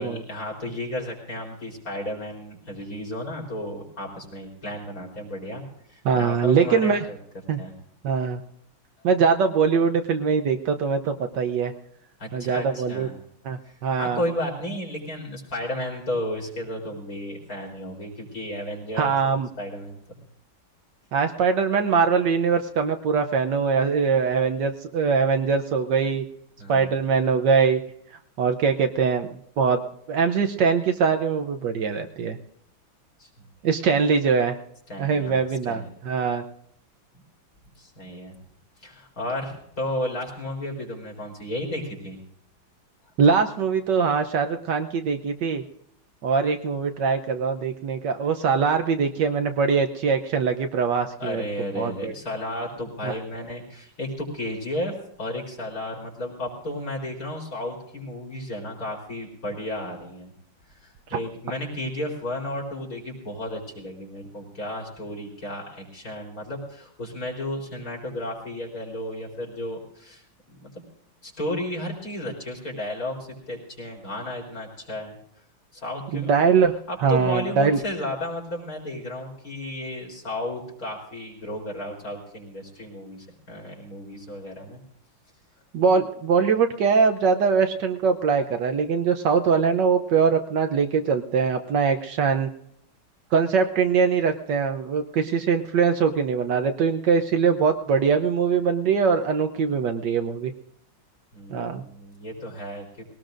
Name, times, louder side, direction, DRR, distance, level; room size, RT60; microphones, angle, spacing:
voice 1, 0.0-5.6 5.9-7.2 7.5-7.7 12.2-13.1 13.6-20.2 26.6-26.9 33.2-33.3 34.9-35.9 37.8-38.4 38.8-42.2 43.0-43.1 51.2-60.3 60.8-70.2 70.5-70.8 71.2-75.2 75.7-76.3 76.9-84.8 101.3-103.0, left 1 dB, 45° left, -1 dB, 4.3 m, -33 dB
voice 2, 6.0-7.1 7.5-7.6 8.0-8.4 9.0-11.7 12.3-13.1 13.4-14.2 19.0-19.5 21.1-26.2 26.7-27.8 28.4-29.3 29.6-29.8 30.1-32.4 33.6-34.6 35.0-36.4 43.2-45.6 46.2-51.4 51.7-52.1 53.0-53.1 61.1-61.2 76.1-76.7 77.0-77.8 85.7-92.5 93.3-100.5 101.5-101.8, right 5 dB, 65° right, 6 dB, 1.3 m, -22 dB
21.0 x 18.5 x 2.5 m, 0.70 s
omnidirectional pair, 2.2 m